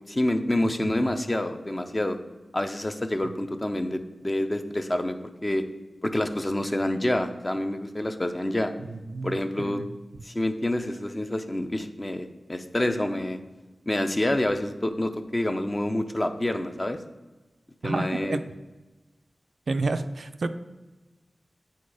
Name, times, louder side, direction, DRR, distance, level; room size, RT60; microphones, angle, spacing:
voice 1, 0.1-2.2 2.5-5.2 5.4-5.6 6.0-8.7 9.2-9.8 10.2-13.4 13.9-17.0 17.8-18.4, left 1 dB, 25° left, 7 dB, 0.6 m, -27 dB
voice 2, 8.8-9.9 17.8-18.4 19.7-20.5, right 3 dB, 70° right, 9 dB, 0.4 m, -30 dB
8.0 x 4.4 x 4.8 m, 1.2 s
wide cardioid pair, 100°, 0 cm